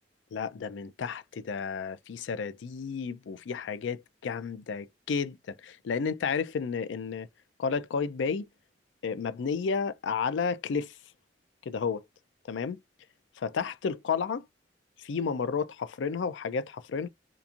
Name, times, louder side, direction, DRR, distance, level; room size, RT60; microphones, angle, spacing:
voice 1, 0.3-7.3 7.6-8.5 9.0-10.9 11.7-12.0 12.5-12.8 13.4-14.4 15.0-17.1, left 5 dB, 80° left, 0.4 m, -32 dB
2.9 x 2.5 x 2.4 m
head